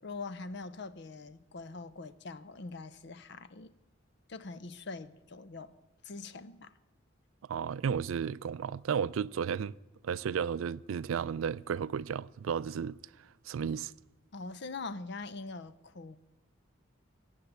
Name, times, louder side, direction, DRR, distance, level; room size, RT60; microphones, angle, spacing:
voice 1, 0.0-3.7 4.3-5.8 6.0-6.7 14.3-16.2, left 3 dB, 55° left, 0.6 m, -43 dB
voice 2, 7.5-9.8 10.0-13.0 13.5-13.9, right 7 dB, 80° right, 0.4 m, -33 dB
17.0 x 7.3 x 8.0 m
head